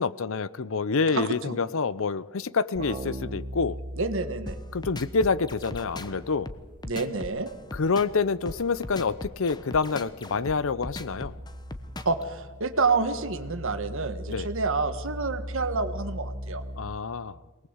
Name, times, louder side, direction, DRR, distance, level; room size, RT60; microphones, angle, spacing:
voice 1, 0.0-3.8 4.7-6.5 7.7-11.4 14.3-14.5 16.8-17.4, left 4 dB, 65° left, 18 dB, 0.7 m, -27 dB
voice 2, 1.1-1.6 4.0-4.6 6.9-7.5 12.0-16.6, right 4 dB, 65° right, 10 dB, 1.5 m, -28 dB
sound 1, 2.7-7.1 7.4-17.0, equal, 40° right, 1.2 m, -40 dB
sound 2, 4.5-12.2, left 1 dB, 20° left, 1.1 m, -39 dB
24.0 x 18.5 x 8.0 m, 1.3 s
head